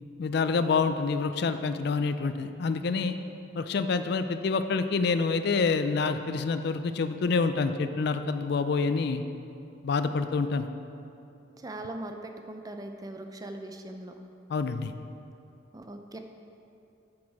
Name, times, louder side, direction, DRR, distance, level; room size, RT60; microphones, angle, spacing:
voice 1, 0.2-3.2 3.5-9.2 9.8-10.7 14.5-14.9, left 4 dB, 55° left, 10 dB, 0.4 m, -27 dB
voice 2, 11.6-14.1 15.7-16.2, right 1 dB, 20° right, 5 dB, 0.5 m, -40 dB
8.6 x 6.2 x 4.8 m, 2.7 s
head